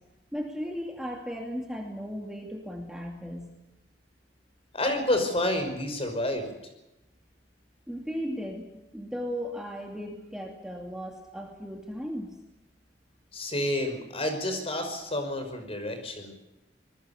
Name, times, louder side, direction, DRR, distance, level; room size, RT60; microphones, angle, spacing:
voice 1, 0.3-3.6 7.9-8.7 8.9-12.4, equal, 5° right, 0 dB, 2.5 m, -36 dB
voice 2, 4.7-6.5 13.3-16.3, left 1 dB, 35° left, 6 dB, 5.4 m, -29 dB
26.0 x 20.5 x 7.1 m, 0.95 s
head